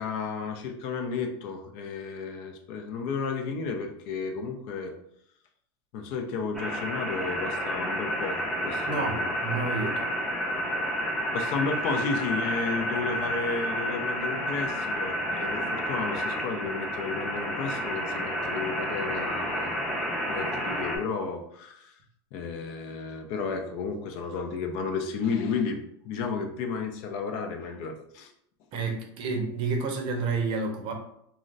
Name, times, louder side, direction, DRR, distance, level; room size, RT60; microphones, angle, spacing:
voice 1, 0.0-4.9 5.9-9.3 11.3-19.7 20.3-21.9 22.3-28.3, left 5 dB, 55° left, 4 dB, 0.5 m, -33 dB
sound 1, 6.5-21.0, equal, ahead, 0.5 m, -30 dB
voice 2, 8.9-10.0 28.7-30.9, right 4 dB, 40° right, 4 dB, 0.6 m, -30 dB
3.7 x 2.1 x 2.4 m, 0.74 s
supercardioid pair, 135°, 13 cm